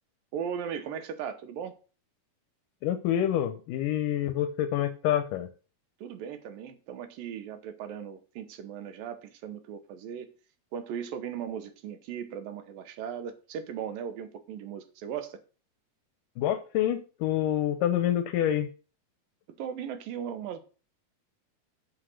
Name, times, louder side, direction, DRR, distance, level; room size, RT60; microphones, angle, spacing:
voice 1, 0.3-1.7 6.0-10.3 10.7-15.4 19.6-20.6, right 8 dB, 75° right, 2.6 m, -37 dB
voice 2, 2.8-5.5 16.4-18.7, left 11 dB, 75° left, 2.1 m, -27 dB
8.0 x 6.3 x 6.3 m
omnidirectional pair, 4.3 m